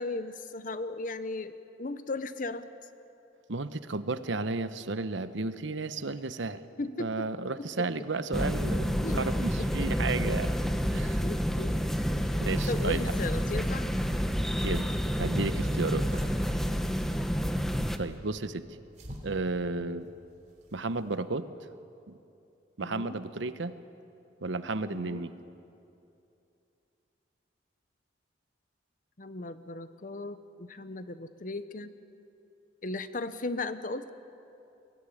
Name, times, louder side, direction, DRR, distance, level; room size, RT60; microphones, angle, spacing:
voice 1, 0.0-2.7 6.8-7.3 7.6-7.9 9.0-9.9 11.2-11.8 12.2-12.3 12.7-13.9 17.1-17.3 19.8-20.0 22.8-23.2 24.9-25.2 29.2-31.9 32.8-34.1, left 2 dB, 45° left, 12 dB, 0.8 m, -37 dB
voice 2, 3.5-6.7 7.0-10.5 10.9-11.2 12.4-13.1 14.6-16.1 18.0-18.7 19.2-20.1 20.7-21.5 22.1-22.2 22.8-23.8 24.4-25.3, right 3 dB, 75° right, 12 dB, 0.9 m, -33 dB
sound 1, 8.3-18.0, equal, ahead, 0.9 m, -29 dB
sound 2, 15.9-21.1, equal, 40° right, 3.4 m, -49 dB
23.0 x 16.5 x 9.9 m, 2.7 s
head